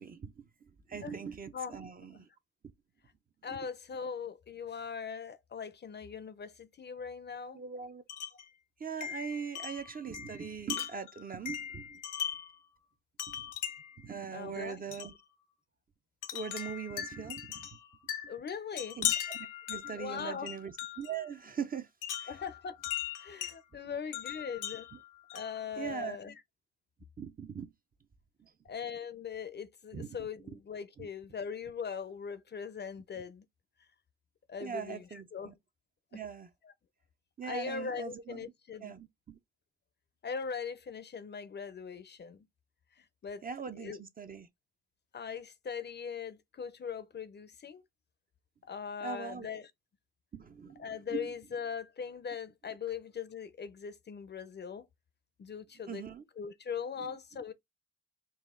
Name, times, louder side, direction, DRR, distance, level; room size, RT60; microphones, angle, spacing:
voice 1, 0.0-2.3 3.5-3.6 7.5-8.0 8.8-12.0 13.3-13.5 14.0-15.1 16.3-17.8 19.0-21.9 22.2-22.4 23.7-23.9 25.8-26.3 27.2-27.7 28.4-28.5 29.9-30.3 31.0-31.1 34.6-35.5 36.1-36.5 37.4-38.5 38.8-39.4 43.4-44.5 49.0-49.5 50.3-51.3 55.9-56.2 57.0-57.1, right 6 dB, 30° right, 0.6 m, -41 dB
voice 2, 3.4-7.6 14.3-14.8 18.3-19.0 19.9-20.5 22.3-22.8 23.2-24.9 25.3-26.3 28.6-33.5 34.5-35.5 36.6-36.7 37.5-38.9 40.2-42.5 43.0-43.4 43.7-44.0 45.1-47.8 48.6-49.7 50.8-54.9 55.4-56.0 56.4-57.5, left 6 dB, 35° left, 0.6 m, -40 dB
Wind chime, 8.1-8.5 9.0-12.6 13.2-14.0 14.9-15.2 16.2-21.2 22.0-23.6 24.1-25.7, left 10 dB, 85° left, 0.9 m, -39 dB
4.1 x 2.4 x 3.6 m
cardioid pair, 90°, 30 cm